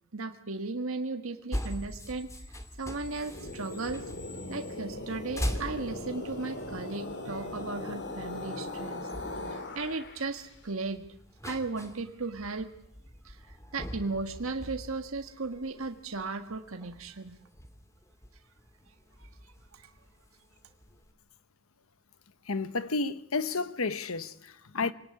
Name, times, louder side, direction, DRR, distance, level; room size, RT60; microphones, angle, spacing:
voice 1, 0.1-4.0 4.5-9.1 9.4-11.0 11.4-12.7 13.2-17.3 19.2-19.9, right 3 dB, 75° right, 1.6 m, -36 dB
sound 1, 1.5-21.1, equal, 15° left, 2.6 m, -43 dB
sound 2, 3.1-10.5, left 2 dB, 55° left, 3.2 m, -39 dB
voice 2, 22.5-24.9, left 3 dB, 80° left, 1.2 m, -31 dB
26.0 x 19.0 x 9.7 m
head